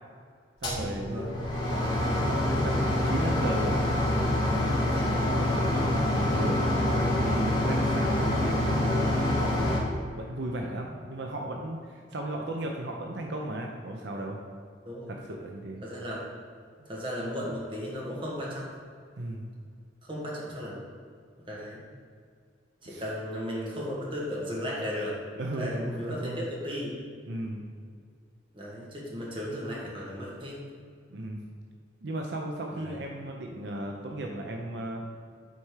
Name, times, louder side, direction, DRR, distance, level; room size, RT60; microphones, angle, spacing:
sound 1, 0.6-9.8, left 1 dB, 25° left, 1.8 m, -26 dB
voice 1, 0.6-1.3 2.2-4.4 4.7-9.8 10.2-14.4 15.1-15.8 19.2-19.4 22.9-23.0 25.4-26.5 27.3-27.7 31.1-31.4 32.0-35.0, right 1 dB, 70° right, 1 dB, 0.7 m, -36 dB
voice 2, 15.8-16.2 16.8-18.7 20.0-20.8 21.5-21.8 22.8-25.2 25.5-26.3 26.6-26.9 28.5-30.6 32.7-33.0, equal, 30° right, -4 dB, 1.7 m, -35 dB
8.2 x 4.3 x 4.8 m, 2.1 s
head